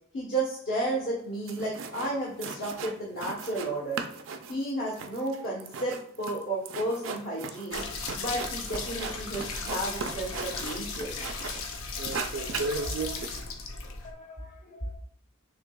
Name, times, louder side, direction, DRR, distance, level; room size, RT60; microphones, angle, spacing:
voice 1, 0.1-4.0 4.5-7.8 8.1-11.3, right 1 dB, 55° left, -6 dB, 1.1 m, -32 dB
sound 1, 1.2-1.3 1.5-2.1 2.4-3.7 3.9-11.7 12.0-13.2, right 4 dB, 70° right, 0.4 m, -37 dB
sound 2, 7.7-14.1, left 4 dB, 80° left, 0.7 m, -36 dB
voice 2, 12.4-13.2 14.0-14.9, equal, 35° left, 2 dB, 0.7 m, -40 dB
6.4 x 2.8 x 2.3 m, 0.67 s
head